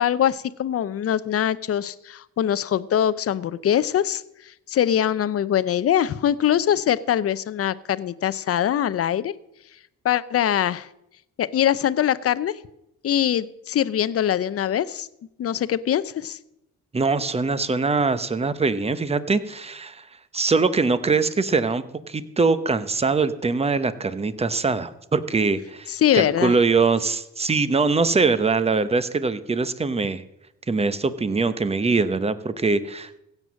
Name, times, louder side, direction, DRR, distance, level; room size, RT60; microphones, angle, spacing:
voice 1, 0.0-9.3 10.0-10.9 11.4-12.5 13.0-15.1 15.4-16.4 25.9-26.5, left 10 dB, 50° left, 16 dB, 0.7 m, -23 dB
voice 2, 16.9-20.1 20.3-30.2 30.7-33.2, right 4 dB, 20° right, 13 dB, 0.9 m, -22 dB
16.5 x 7.5 x 6.3 m, 0.84 s
cardioid pair, 90°, 30 cm